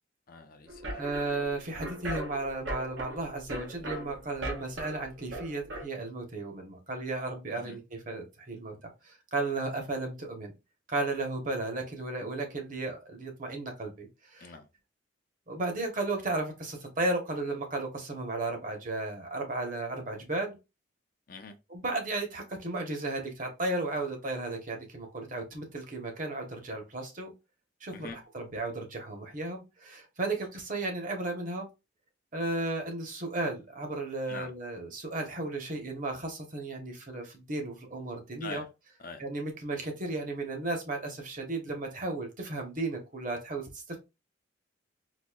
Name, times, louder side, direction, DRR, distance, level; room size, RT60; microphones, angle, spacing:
voice 1, 0.3-1.0 7.6-7.8 14.4-14.7 21.3-21.5 27.9-28.2 34.3-34.5 38.4-38.7 39.0-39.2, left 4 dB, 50° left, 0.6 m, -43 dB
sound 1, 0.7-5.8, right 1 dB, 80° right, 1.1 m, -39 dB
voice 2, 1.0-10.5 10.9-14.5 15.5-20.6 21.7-27.3 27.8-31.7 32.3-38.6 39.2-44.0, right 2 dB, 45° right, 1.0 m, -34 dB
4.1 x 2.6 x 2.3 m
head